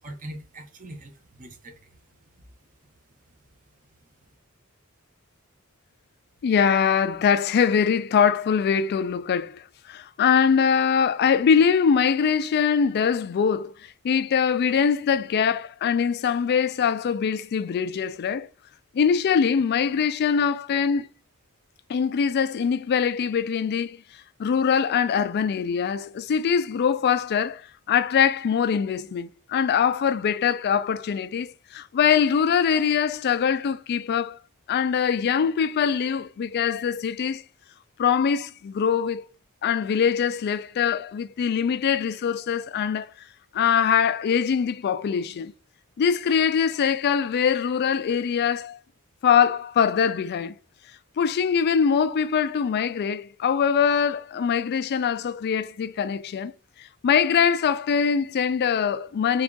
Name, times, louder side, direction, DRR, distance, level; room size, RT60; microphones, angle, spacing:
voice 1, 0.0-2.5 4.0-4.3, right 1 dB, 35° right, 0.8 m, -43 dB
voice 2, 6.4-18.5 18.9-21.1 21.9-24.0 24.4-34.4 34.7-37.4 38.0-39.2 39.6-43.1 43.5-45.5 46.0-48.8 49.2-50.5 51.2-56.5 56.8-59.4, left 7 dB, 45° left, 0.3 m, -23 dB
3.5 x 2.4 x 3.7 m
head